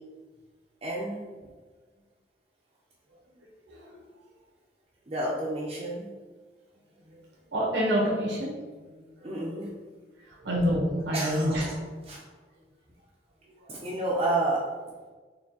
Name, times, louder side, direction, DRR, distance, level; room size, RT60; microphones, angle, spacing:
voice 1, 0.8-1.2 5.1-6.1 9.2-9.7 11.1-11.7 12.1-12.2 13.7-14.6, right 2 dB, 35° right, -6 dB, 0.5 m, -30 dB
voice 2, 3.3-4.0 7.0-7.2 7.5-9.6 10.2-11.7 13.5-13.7, equal, 85° right, -4 dB, 0.9 m, -29 dB
4.3 x 2.8 x 2.8 m, 1.4 s
head